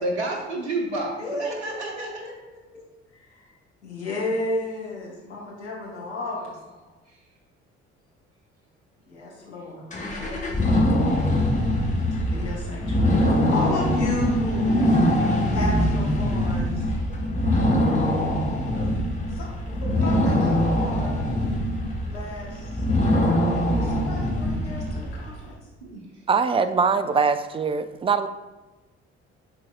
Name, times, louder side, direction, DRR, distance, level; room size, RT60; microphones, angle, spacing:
voice 1, 0.0-2.3 25.8-26.0, right 2 dB, 80° right, 0 dB, 0.9 m, -30 dB
voice 2, 1.2-2.8 3.1-3.5 3.8-6.8 9.1-10.8 12.1-14.9 15.5-16.8 17.5-18.3 18.7-18.9 19.3-21.1 22.0-22.8 23.8-25.5, left 2 dB, 80° left, -5 dB, 1.4 m, -33 dB
sound 1, 9.9-25.3, left 1 dB, 20° left, 1.4 m, -23 dB
voice 3, 26.3-28.3, right 5 dB, 15° right, 11 dB, 0.4 m, -22 dB
10.5 x 4.0 x 2.4 m, 1.1 s
figure-of-eight pair, 45°, 33 cm